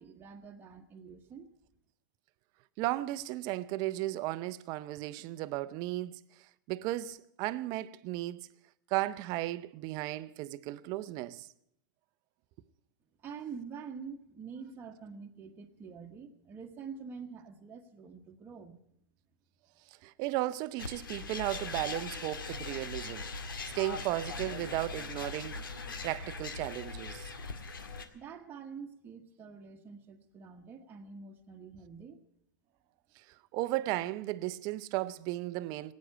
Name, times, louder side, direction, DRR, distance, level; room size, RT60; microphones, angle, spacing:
voice 1, 0.0-1.5 13.2-18.8 28.1-32.2, right 6 dB, 20° right, 1.2 m, -46 dB
voice 2, 2.8-6.2 6.7-8.5 8.9-11.5 20.0-23.2 23.7-25.6 26.0-27.3 33.5-35.9, right 17 dB, 35° right, 0.6 m, -35 dB
sound 1, 20.8-28.0, left 4 dB, 90° left, 1.9 m, -40 dB
17.0 x 9.4 x 8.8 m
hypercardioid pair, 135°, 11 cm